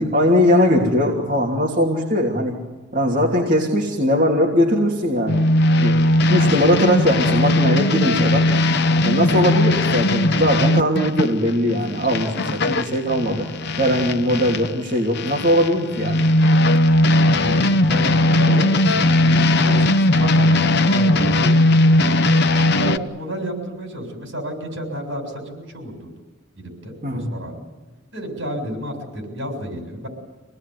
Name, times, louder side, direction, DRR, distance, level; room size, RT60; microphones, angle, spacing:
voice 1, 0.0-2.5 2.9-5.5 5.8-6.0 6.3-8.5 9.0-13.5 13.8-16.3 27.0-27.3, equal, 40° right, -3 dB, 3.0 m, -20 dB
sound 1, 5.3-14.7 15.1-23.0, left 1 dB, 55° left, 0.8 m, -18 dB
voice 2, 17.2-22.3 22.7-26.1 26.6-27.6 28.1-30.1, equal, 70° right, 4 dB, 7.1 m, -31 dB
26.0 x 19.0 x 9.5 m, 1.2 s
head